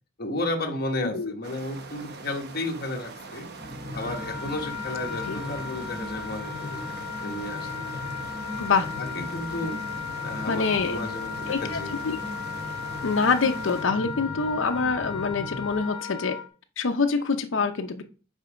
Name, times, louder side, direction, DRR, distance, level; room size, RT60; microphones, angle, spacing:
voice 1, 0.2-3.5 3.9-6.8 7.2-8.0 9.0-9.8 10.2-11.9, left 2 dB, 50° left, 3 dB, 1.1 m, -33 dB
voice 2, 1.0-1.3 5.3-5.4 8.6-8.9 10.5-11.0 11.5-11.8 12.0-12.2 13.0-16.4 16.8-18.0, left 4 dB, 70° left, 6 dB, 0.6 m, -25 dB
sound 1, 1.4-13.8, right 4 dB, 55° right, 0.8 m, -42 dB
sound 2, 3.6-15.8, left 1 dB, 5° left, 1.3 m, -39 dB
Wind instrument woodwind instrument, 4.0-16.4, left 6 dB, 30° right, 3.1 m, -36 dB
5.3 x 4.5 x 5.1 m, 0.36 s
head